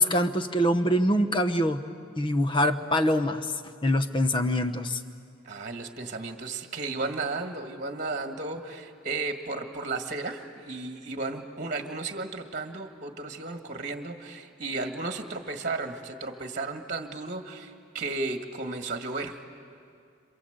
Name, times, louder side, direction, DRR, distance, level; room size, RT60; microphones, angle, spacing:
voice 1, 0.0-1.8 2.2-3.5 3.8-5.0, left 1 dB, 25° left, 9 dB, 0.9 m, -24 dB
voice 2, 5.4-19.4, right 3 dB, 35° right, 5 dB, 1.7 m, -34 dB
27.5 x 27.0 x 8.0 m, 2.4 s
head